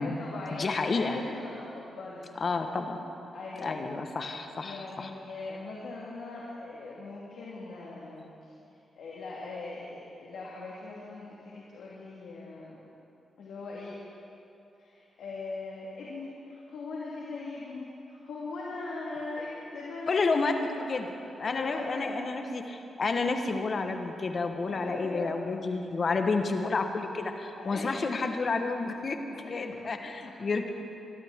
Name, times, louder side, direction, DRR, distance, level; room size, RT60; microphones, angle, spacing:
voice 1, 0.0-2.4 3.3-3.8 4.6-8.5 8.9-12.8 13.4-14.0 14.8-20.4 20.8-21.0 21.4-22.2 24.7-25.3 27.5-28.1 29.4-29.5, left 3 dB, 75° left, -5 dB, 1.9 m, -40 dB
voice 2, 0.5-1.2 2.4-3.0 3.6-5.1 20.1-21.1 21.4-30.7, left 3 dB, 55° left, 6 dB, 1.3 m, -30 dB
22.5 x 12.5 x 3.7 m, 2.8 s
supercardioid pair, 45°, 0 cm